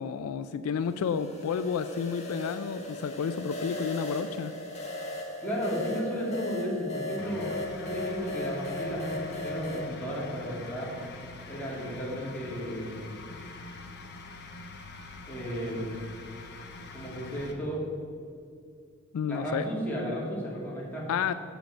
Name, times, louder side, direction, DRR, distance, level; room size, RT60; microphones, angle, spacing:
voice 1, 0.0-4.5 19.1-19.7 21.1-21.3, left 6 dB, 75° left, 12 dB, 0.3 m, -31 dB
sound 1, 0.8-9.9, left 1 dB, 30° left, 1.4 m, -38 dB
voice 2, 5.4-7.5 7.8-10.9 11.5-13.2 15.3-15.9 16.9-17.9 19.3-21.1, equal, 10° left, -6 dB, 2.3 m, -33 dB
sound 2, 7.2-17.5, left 3 dB, 55° left, 1.0 m, -45 dB
7.6 x 5.2 x 7.1 m, 2.3 s
head